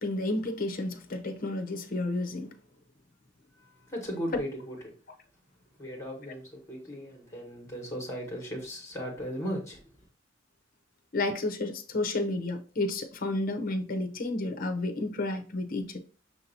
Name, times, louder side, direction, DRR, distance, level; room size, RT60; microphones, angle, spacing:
voice 1, 0.0-2.5 11.1-16.0, left 2 dB, 45° left, 0.6 m, -31 dB
voice 2, 3.9-4.8 5.8-9.8, equal, 15° left, 1.3 m, -37 dB
6.0 x 2.8 x 2.7 m
head